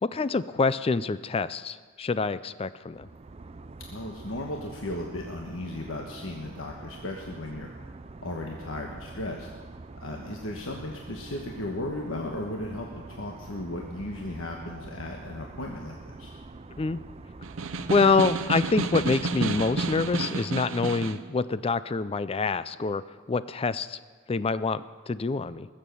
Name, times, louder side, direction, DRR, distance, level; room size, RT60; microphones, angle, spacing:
voice 1, 0.0-3.1 16.8-17.0 17.9-23.0 23.3-24.0 24.3-25.7, left 4 dB, 30° left, 15 dB, 0.4 m, -26 dB
sound 1, 2.9-20.3, right 3 dB, 30° right, 0.5 m, -45 dB
voice 2, 3.9-7.7 8.2-9.5 10.0-16.4, left 1 dB, 70° left, 1 dB, 1.3 m, -36 dB
Snare drum, 17.4-21.3, right 3 dB, 65° right, 0.7 m, -30 dB
20.5 x 7.5 x 6.9 m, 1.5 s
head